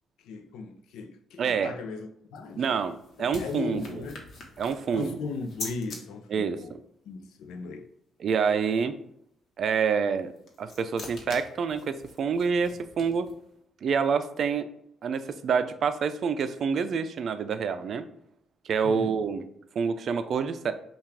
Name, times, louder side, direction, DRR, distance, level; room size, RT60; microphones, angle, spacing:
voice 1, 0.2-2.7 3.2-4.2 4.9-6.7 7.1-7.9 18.8-19.1, left 4 dB, 85° left, 0.5 m, -37 dB
voice 2, 1.4-1.7 2.6-3.9 4.6-5.2 6.3-6.8 8.2-9.0 9.6-10.3 10.6-13.3 13.8-14.7 15.0-18.0 18.7-19.5 19.8-20.7, right 6 dB, 60° right, 0.4 m, -27 dB
sound 1, 2.4-6.0 10.1-13.5, left 2 dB, 55° left, 1.1 m, -44 dB
5.6 x 2.4 x 3.3 m
cardioid pair, 90°, 0 cm